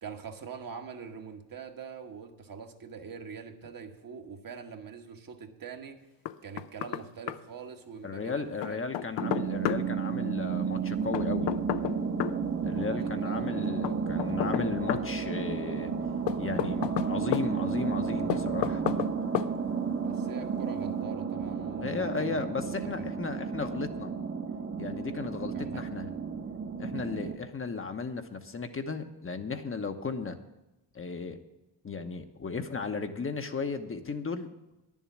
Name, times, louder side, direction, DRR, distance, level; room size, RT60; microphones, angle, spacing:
voice 1, 0.0-6.0 6.4-8.8 9.2-9.3 12.6-13.5 13.7-14.4 20.0-22.4 22.8-23.1 23.5-23.7 25.5-25.8 26.9-27.3, right 6 dB, 50° right, 4 dB, 1.3 m, -44 dB
Knock, 6.3-7.0 7.3-7.4 8.6-9.8 11.1-12.4 13.8-15.1 16.3-17.5 18.3-19.1 19.3-19.5, left 12 dB, 75° left, 0.6 m, -31 dB
voice 2, 8.0-11.6 12.6-15.9 16.4-18.9 21.8-24.2 24.8-26.1 26.8-30.4 30.9-31.4 31.8-34.5, left 4 dB, 30° left, 6 dB, 0.9 m, -35 dB
sound 1, 9.2-27.4, right 6 dB, 30° right, 0.9 m, -32 dB
10.0 x 7.3 x 7.2 m, 0.99 s
cardioid pair, 75°, 43 cm